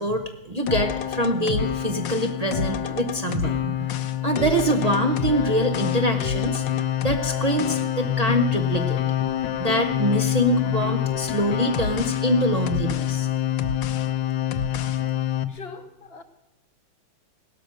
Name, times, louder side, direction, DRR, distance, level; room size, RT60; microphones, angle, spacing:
voice 1, 0.0-9.0 9.6-13.3, right 1 dB, 55° right, 0.4 m, -25 dB
sound 1, 0.7-15.5, left 10 dB, 75° left, 1.5 m, -26 dB
voice 2, 15.5-16.2, left 4 dB, 45° left, 0.8 m, -41 dB
17.0 x 13.0 x 6.3 m
omnidirectional pair, 2.1 m